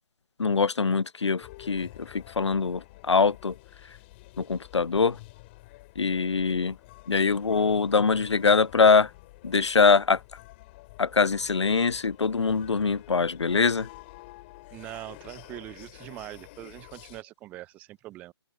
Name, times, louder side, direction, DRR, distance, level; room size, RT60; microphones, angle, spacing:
voice 1, 0.4-3.6 4.4-5.2 6.0-6.8 7.1-9.1 9.4-10.2 11.0-13.9, left 5 dB, 85° left, 0.4 m, -23 dB
sound 1, 1.4-17.2, left 21 dB, 25° left, 3.3 m, -49 dB
voice 2, 14.7-18.3, right 16 dB, 10° right, 0.5 m, -42 dB
open air
figure-of-eight pair, 140°, 14 cm